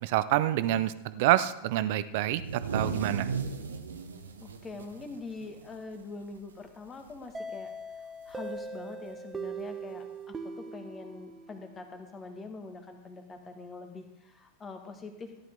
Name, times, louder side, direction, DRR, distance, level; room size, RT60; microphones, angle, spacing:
voice 1, 0.0-3.3, right 14 dB, 50° right, 14 dB, 0.6 m, -27 dB
sound 1, 2.3-6.0 6.3-6.5 6.9-7.3 8.4-8.5 9.6-9.7, right 5 dB, 70° right, 1.0 m, -36 dB
voice 2, 4.4-15.4, left 3 dB, 20° left, 6 dB, 1.7 m, -44 dB
sound 2, 7.3-12.0, right 3 dB, 15° right, 0.8 m, -41 dB
15.0 x 10.5 x 3.9 m, 0.91 s
figure-of-eight pair, 90°, 0 cm